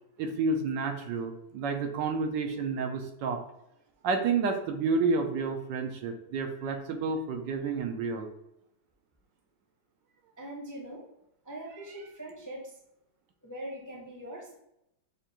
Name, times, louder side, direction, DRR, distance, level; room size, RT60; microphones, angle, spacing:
voice 1, 0.2-3.4 4.0-8.3, right 4 dB, 80° right, 4 dB, 1.3 m, -30 dB
voice 2, 10.4-11.0 11.4-12.8 13.4-14.5, right 1 dB, 15° left, -2 dB, 0.6 m, -42 dB
7.0 x 2.5 x 2.9 m, 0.81 s
omnidirectional pair, 2.0 m